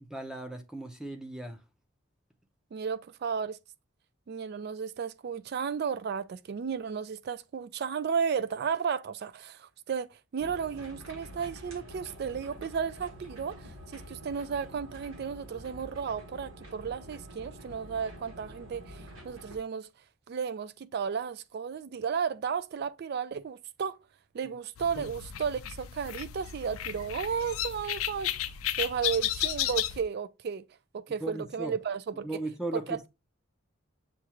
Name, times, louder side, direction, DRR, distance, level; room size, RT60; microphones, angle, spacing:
voice 1, 0.1-1.6 24.4-24.5 25.0-25.1 31.2-31.7 32.2-33.0, right 2 dB, 5° right, 0.6 m, -37 dB
voice 2, 2.7-3.6 4.3-19.9 20.3-24.0 24.3-28.3 28.8-30.6 30.9-32.4 32.7-33.1, right 6 dB, 50° right, 0.3 m, -33 dB
sound 1, 10.4-19.6, equal, 75° right, 1.4 m, -47 dB
sound 2, 24.8-30.0, left 12 dB, 80° left, 0.4 m, -33 dB
7.0 x 2.4 x 2.9 m
head